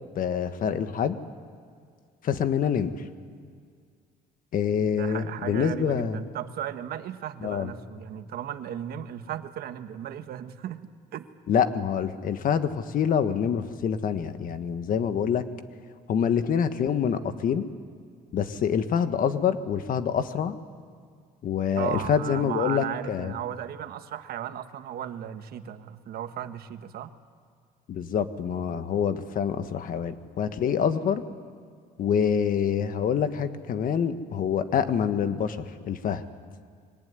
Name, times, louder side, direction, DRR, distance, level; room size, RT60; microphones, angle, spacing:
voice 1, 0.1-1.2 2.2-2.9 4.5-6.2 7.4-7.7 11.5-15.4 16.1-17.7 18.3-20.6 21.4-23.3 27.9-31.2 32.0-36.2, left 7 dB, 55° left, 10 dB, 1.4 m, -26 dB
voice 2, 4.8-11.3 21.8-27.1, right 10 dB, 65° right, 10 dB, 1.3 m, -36 dB
23.5 x 19.0 x 9.6 m, 2.1 s
cardioid pair, 110°, 17 cm